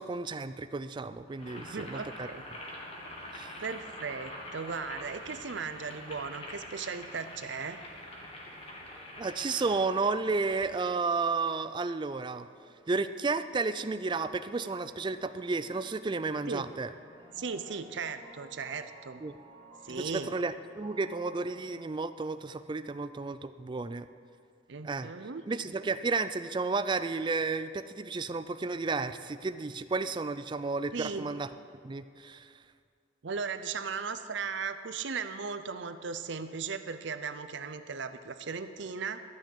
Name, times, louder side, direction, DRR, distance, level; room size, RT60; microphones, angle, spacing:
voice 1, 0.0-2.3 3.3-3.5 9.2-12.5 12.9-16.9 19.2-19.3 19.9-24.1 24.8-25.1 25.5-31.5 31.8-32.5, right 3 dB, 25° right, 12 dB, 0.3 m, -32 dB
Boiling, 1.3-10.7, left 1 dB, 30° left, 1.6 m, -45 dB
voice 2, 1.6-2.5 3.6-7.8 16.5-16.7 17.4-19.2 19.8-20.3 24.7-25.4 30.9-31.3 33.2-39.2, right 5 dB, 65° right, 11 dB, 0.6 m, -37 dB
sound 1, 8.8-21.6, right 1 dB, 10° left, 3.7 m, -56 dB
13.0 x 6.1 x 8.4 m, 2.3 s
head